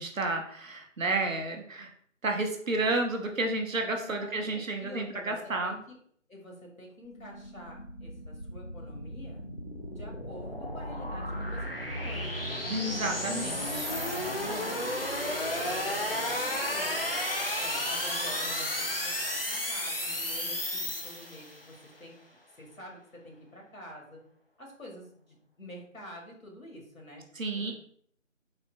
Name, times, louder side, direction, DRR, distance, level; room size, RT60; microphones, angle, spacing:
voice 1, 0.0-1.9 2.2-5.7 12.7-13.9 27.4-27.7, right 2 dB, 75° right, 4 dB, 0.8 m, -31 dB
voice 2, 4.0-5.9 6.3-9.4 9.9-12.7 13.2-13.4 13.9-15.1 15.5-17.2 17.6-22.2 22.5-24.2 24.6-27.3 27.5-27.7, equal, 90° left, -1 dB, 1.4 m, -47 dB
sound 1, 7.1-21.7, left 1 dB, 45° left, 0.5 m, -33 dB
4.1 x 2.0 x 2.5 m, 0.62 s
figure-of-eight pair, 165°, 40 cm